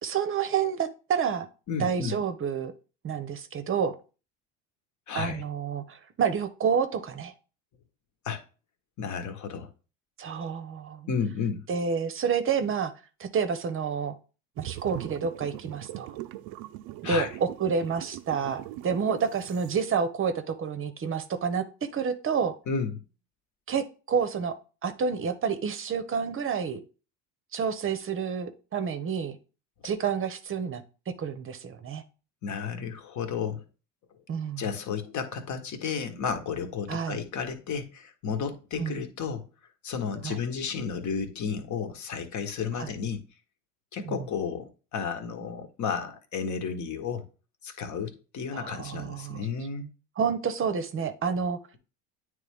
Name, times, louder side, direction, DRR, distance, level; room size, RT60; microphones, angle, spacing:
voice 1, 0.0-1.5 1.8-2.7 3.0-4.0 5.1-7.3 10.2-11.1 11.7-12.9 13.2-14.1 14.6-16.2 17.0-21.6 21.9-22.5 23.7-24.6 24.8-26.8 27.5-29.4 29.8-32.0 34.3-34.6 36.9-37.2 38.8-39.0 40.2-40.4 42.8-42.9 44.0-44.3 48.5-49.5 50.2-51.6, right 6 dB, 30° right, 0.8 m, -29 dB
voice 2, 1.7-2.2 5.1-5.4 8.2-8.4 9.0-9.7 11.1-11.6 17.0-17.3 22.7-23.0 32.4-33.6 34.6-39.4 39.8-43.2 43.9-47.3 47.6-49.9, left 6 dB, 45° left, 1.2 m, -32 dB
sound 1, 14.6-19.7, right 16 dB, 60° right, 0.5 m, -41 dB
9.1 x 3.2 x 3.5 m
hypercardioid pair, 80°, 41 cm